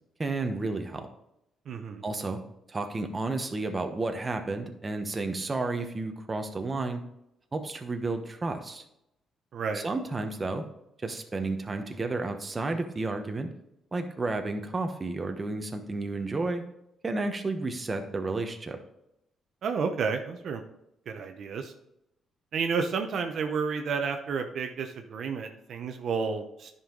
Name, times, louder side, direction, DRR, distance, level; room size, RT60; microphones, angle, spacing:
voice 1, 0.2-1.1 2.0-2.4 2.7-7.0 7.5-8.8 9.7-10.6 11.0-13.5 13.9-16.6 17.0-18.8, right 3 dB, 25° right, 6 dB, 1.1 m, -31 dB
voice 2, 1.7-2.0 9.5-9.8 19.6-20.6 21.1-21.7 22.5-26.7, right 5 dB, 65° right, 5 dB, 0.8 m, -31 dB
10.0 x 5.6 x 3.9 m, 0.82 s
cardioid pair, 90°, 0 cm